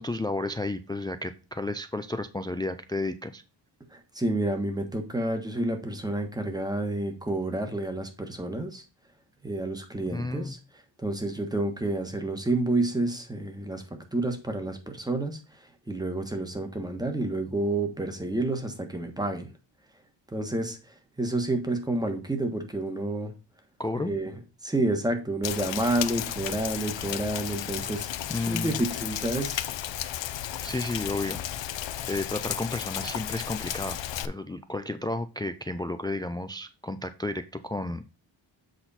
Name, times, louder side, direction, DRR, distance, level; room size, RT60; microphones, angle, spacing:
voice 1, 0.0-3.4 10.1-10.6 23.8-24.1 28.3-28.8 30.6-34.0 34.2-38.0, left 2 dB, 10° left, 11 dB, 0.4 m, -32 dB
voice 2, 3.9-8.8 9.4-10.6 11.0-13.8 14.1-15.4 15.9-19.5 20.3-23.3 24.0-29.6, right 2 dB, 10° right, 5 dB, 1.3 m, -29 dB
Rain, 25.4-34.3, left 11 dB, 80° left, 0.7 m, -33 dB
7.9 x 4.2 x 4.2 m, 0.31 s
wide cardioid pair, 135°, 44 cm